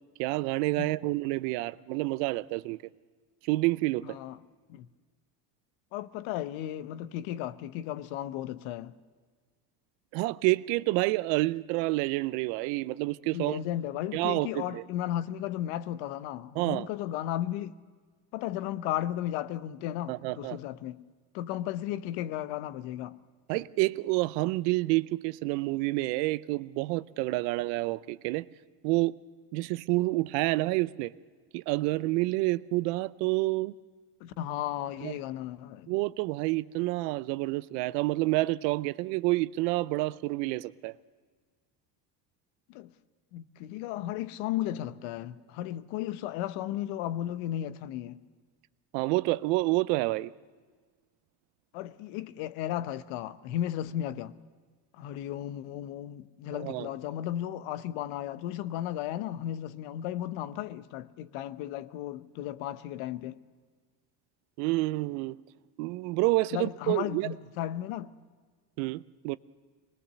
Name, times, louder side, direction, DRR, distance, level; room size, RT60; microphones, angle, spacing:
voice 1, 0.2-2.8 3.4-4.2 10.1-13.6 14.1-14.8 16.6-16.9 20.1-20.6 23.5-28.5 28.8-29.2 29.5-31.1 31.5-33.7 35.0-35.1 35.9-40.9 48.9-50.3 56.5-56.9 64.6-65.4 65.8-67.3 68.8-69.4, right 20 dB, 80° right, 0.7 m, -28 dB
voice 2, 4.0-4.4 4.7-4.9 5.9-8.9 13.3-17.7 18.3-21.0 21.3-23.2 23.5-23.6 34.2-36.0 42.7-42.9 43.3-48.2 51.7-54.4 54.9-63.4 66.5-68.2, left 12 dB, 75° left, 0.9 m, -35 dB
24.0 x 20.5 x 6.8 m
supercardioid pair, 85°, 49 cm